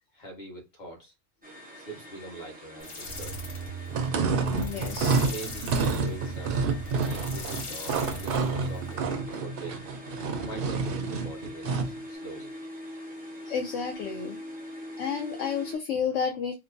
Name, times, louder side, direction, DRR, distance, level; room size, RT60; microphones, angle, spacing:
voice 1, 0.1-1.1 1.7-3.4 4.1-4.4 5.2-6.6 7.0-9.8 10.4-12.5, right 2 dB, 35° left, 1.3 m, -43 dB
sound 1, 1.4-15.8, equal, 10° right, 0.4 m, -43 dB
sound 2, 2.8-9.1, right 2 dB, 90° left, 1.4 m, -38 dB
sound 3, 3.9-12.0, right 4 dB, 60° right, 0.6 m, -29 dB
voice 2, 4.5-5.2 13.5-14.4 15.0-16.5, left 6 dB, 70° left, 0.9 m, -31 dB
3.0 x 2.0 x 2.5 m
omnidirectional pair, 1.4 m